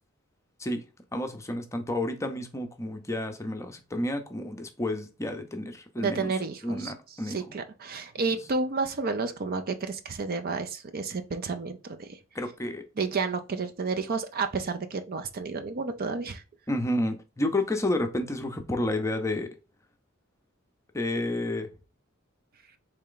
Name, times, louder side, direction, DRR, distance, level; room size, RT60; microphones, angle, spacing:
voice 1, 1.1-6.3 6.6-7.4 12.3-12.8 16.7-19.5 20.9-21.7, left 1 dB, 15° left, 0.6 m, -30 dB
voice 2, 6.0-6.9 7.2-12.2 13.0-16.4, right 4 dB, 45° right, 0.5 m, -31 dB
4.2 x 3.3 x 3.8 m
head